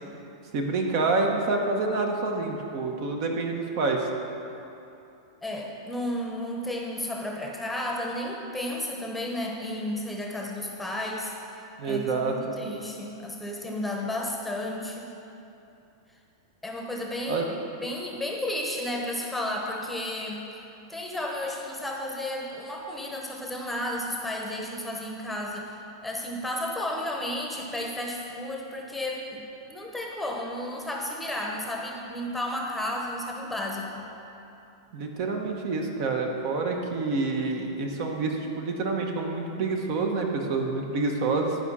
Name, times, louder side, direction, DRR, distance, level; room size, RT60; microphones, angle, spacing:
voice 1, 0.5-4.1 11.8-12.6 17.3-17.4 34.9-41.6, right 3 dB, 55° right, 2 dB, 1.2 m, -27 dB
voice 2, 5.4-15.1 16.6-17.4 17.8-20.4 20.9-29.4 29.7-34.1, left 1 dB, 5° left, 0 dB, 0.9 m, -33 dB
11.0 x 4.9 x 5.6 m, 2.8 s
hypercardioid pair, 130°, 2 cm